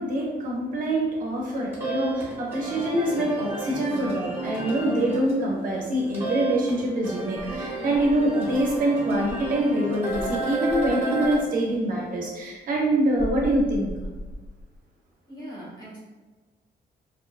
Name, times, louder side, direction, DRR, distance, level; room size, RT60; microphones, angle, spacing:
voice 1, 0.0-13.9, right 1 dB, 50° right, -2 dB, 0.5 m, -25 dB
sound 1, 1.4-11.4, right 2 dB, 15° right, 0.7 m, -32 dB
Insect, 7.4-9.6 10.1-11.5 13.2-14.8, equal, 80° left, 1.1 m, -38 dB
voice 2, 15.3-16.0, equal, 25° left, -7 dB, 0.8 m, -40 dB
2.7 x 2.1 x 2.3 m, 1.3 s
wide cardioid pair, 175°, 18 cm